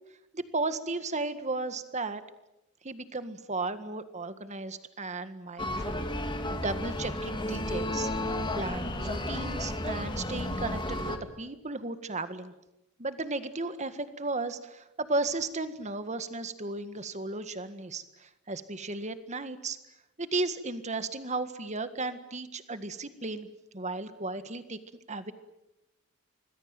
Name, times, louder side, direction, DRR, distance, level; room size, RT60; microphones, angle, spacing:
voice 1, 0.3-2.2 2.8-12.5 13.0-19.8 20.2-23.5 23.7-24.8 25.1-25.3, right 3 dB, 30° right, 11 dB, 1.8 m, -35 dB
sound 1, 5.6-11.2, left 1 dB, 20° left, 2.4 m, -32 dB
26.5 x 20.5 x 9.1 m, 0.91 s
head